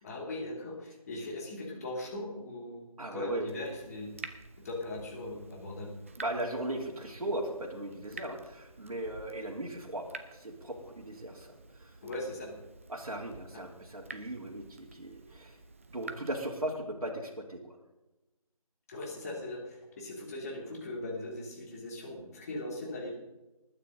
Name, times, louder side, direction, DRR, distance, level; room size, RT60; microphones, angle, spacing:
voice 1, 0.0-4.3 4.6-6.0 12.0-12.6 18.9-23.1, left 2 dB, 25° left, -1 dB, 2.9 m, -39 dB
voice 2, 3.0-3.5 6.2-11.9 12.9-15.6 15.9-17.8, right 1 dB, 70° right, -2 dB, 2.9 m, -38 dB
Water tap faucet / Drip, 3.5-16.4, right 3 dB, 20° right, 0.6 m, -50 dB
20.0 x 9.5 x 3.9 m, 1.0 s
figure-of-eight pair, 160°, 19 cm